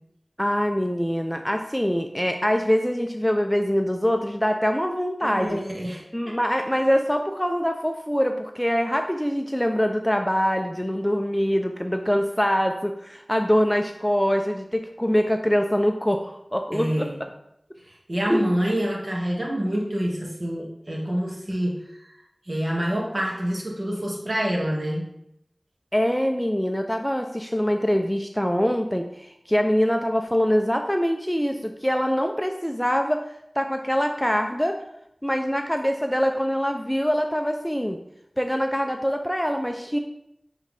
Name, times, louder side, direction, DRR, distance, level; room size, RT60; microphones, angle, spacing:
voice 1, 0.4-5.6 6.1-17.1 18.3-18.4 25.9-33.2 33.6-34.8 35.2-38.0 38.4-40.0, equal, 5° left, 4 dB, 0.5 m, -24 dB
voice 2, 5.2-6.4 16.7-17.2 17.8-22.2 22.5-25.0, equal, 45° right, -2 dB, 1.8 m, -27 dB
8.7 x 3.7 x 3.3 m, 0.78 s
wide cardioid pair, 50°, 0 cm